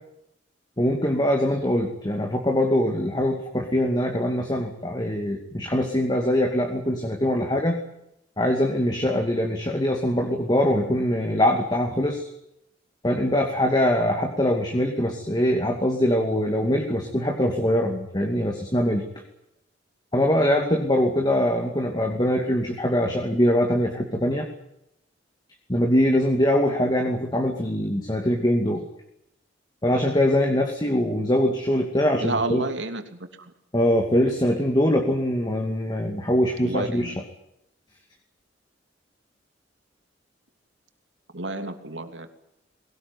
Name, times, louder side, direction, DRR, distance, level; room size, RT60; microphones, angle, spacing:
voice 1, 0.8-7.8 8.4-12.3 13.0-19.0 20.1-24.5 25.7-28.9 29.8-32.6 33.7-37.1, left 1 dB, 20° left, 2 dB, 2.5 m, -23 dB
voice 2, 32.2-33.5 36.6-37.2 41.3-42.3, right 2 dB, 70° right, 7 dB, 3.1 m, -30 dB
22.0 x 18.5 x 9.7 m, 0.81 s
head